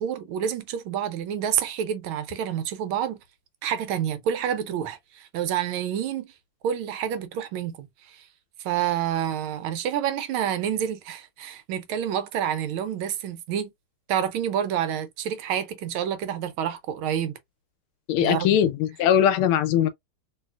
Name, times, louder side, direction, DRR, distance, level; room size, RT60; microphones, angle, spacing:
voice 1, 0.0-3.2 3.6-6.3 6.6-8.3 8.6-13.7 14.1-17.3 18.2-18.5, right 9 dB, 80° right, 1.4 m, -28 dB
voice 2, 18.1-19.9, left 10 dB, 85° left, 1.5 m, -21 dB
3.1 x 2.7 x 2.3 m
omnidirectional pair, 2.3 m